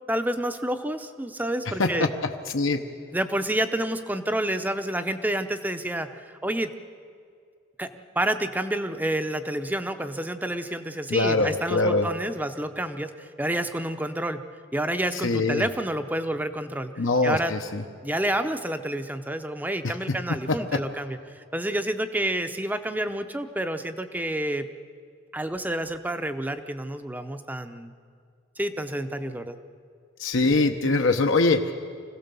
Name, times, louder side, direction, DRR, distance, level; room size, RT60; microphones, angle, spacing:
voice 1, 0.1-2.1 3.1-6.7 7.8-14.4 14.7-17.5 18.0-24.7 25.3-27.9 28.6-29.6, right 1 dB, 10° right, 9 dB, 0.6 m, -29 dB
voice 2, 2.5-2.8 11.1-12.1 15.2-15.7 17.0-17.8 19.8-19.9 20.5-20.8 30.2-31.7, left 3 dB, 65° left, 4 dB, 0.9 m, -23 dB
25.5 x 16.5 x 6.9 m, 2.3 s
head